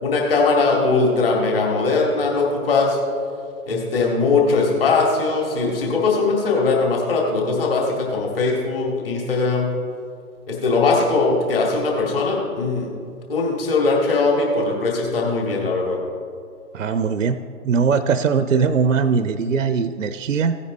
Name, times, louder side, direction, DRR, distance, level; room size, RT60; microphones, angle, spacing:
voice 1, 0.0-3.0 3.7-9.7 10.5-12.9 13.3-16.0, left 3 dB, 40° left, -1 dB, 2.2 m, -20 dB
voice 2, 16.7-17.4 17.6-20.6, right 5 dB, 60° right, 12 dB, 0.5 m, -20 dB
16.0 x 9.6 x 3.1 m, 2.3 s
figure-of-eight pair, 140°, 46 cm